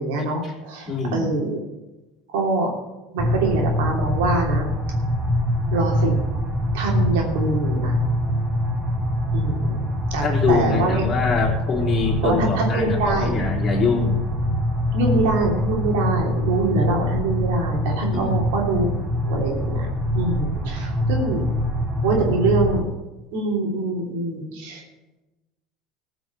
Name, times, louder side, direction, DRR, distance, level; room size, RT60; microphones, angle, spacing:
voice 1, 0.0-1.6 2.3-2.7 3.1-4.7 5.7-6.1 6.7-7.9 9.3-9.8 10.1-11.0 12.2-13.3 14.9-19.9 20.1-21.4 22.0-22.9 23.3-24.8, right 2 dB, 80° right, 0 dB, 2.9 m, -24 dB
voice 2, 0.9-1.3 10.2-14.2 18.1-18.4, left 4 dB, 30° left, -3 dB, 3.2 m, -24 dB
sound 1, 3.2-22.8, equal, 20° right, 3.6 m, -24 dB
14.5 x 6.0 x 6.8 m, 1.1 s
supercardioid pair, 100°, 0 cm